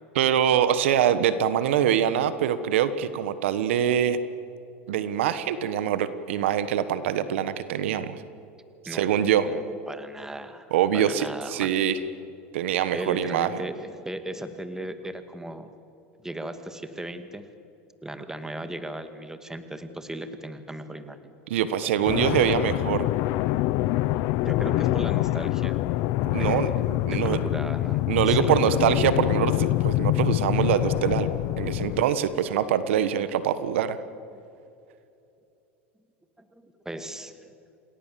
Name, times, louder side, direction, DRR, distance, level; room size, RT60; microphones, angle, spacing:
voice 1, 0.1-4.2 4.9-8.2 8.9-9.5 10.7-12.0 12.5-13.5 21.5-23.1 26.2-27.4 28.1-31.3 31.6-34.0, right 9 dB, 80° right, 13 dB, 1.3 m, -24 dB
voice 2, 9.4-12.0 12.9-15.7 16.2-17.5 18.0-21.3 24.4-25.8 26.3-26.8 27.1-28.8 34.3-34.4 36.5-37.5, right 1 dB, 10° right, 9 dB, 2.1 m, -37 dB
sound 1, 22.0-32.0, left 17 dB, 60° left, 0.7 m, -25 dB
28.0 x 19.0 x 7.6 m, 2.7 s
hypercardioid pair, 100°, 7 cm